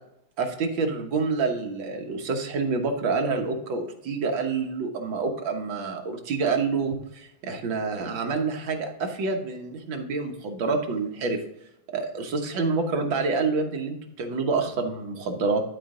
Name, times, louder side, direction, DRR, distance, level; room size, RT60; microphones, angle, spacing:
voice 1, 0.4-11.4 11.9-15.6, right 4 dB, 85° right, 4 dB, 1.9 m, -27 dB
11.5 x 4.5 x 3.8 m, 0.80 s
omnidirectional pair, 2.0 m